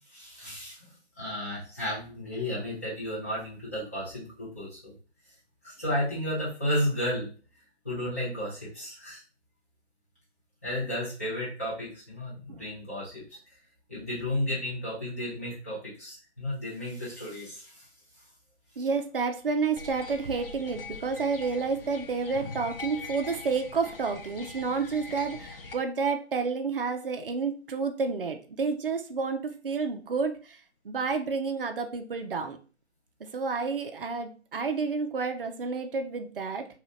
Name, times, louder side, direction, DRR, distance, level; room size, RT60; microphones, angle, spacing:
voice 1, 0.1-0.8 1.2-4.9 5.6-7.3 7.8-9.2 10.6-13.2 13.9-17.9, left 1 dB, 15° left, -9 dB, 0.8 m, -33 dB
voice 2, 18.8-32.6 33.2-36.7, right 4 dB, 50° right, 6 dB, 0.4 m, -30 dB
sound 1, 19.8-25.7, left 3 dB, 55° left, 0.5 m, -42 dB
2.8 x 2.3 x 3.1 m, 0.37 s
figure-of-eight pair, 160°, 35 cm